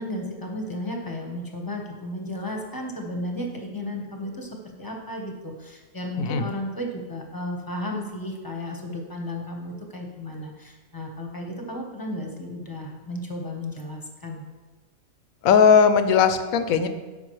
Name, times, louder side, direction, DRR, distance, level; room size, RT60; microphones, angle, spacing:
voice 1, 0.0-14.4, left 1 dB, 15° left, 1 dB, 0.9 m, -34 dB
voice 2, 6.2-6.5 15.4-16.9, left 6 dB, 80° left, 9 dB, 1.1 m, -18 dB
12.5 x 5.3 x 3.1 m, 1.2 s
omnidirectional pair, 1.5 m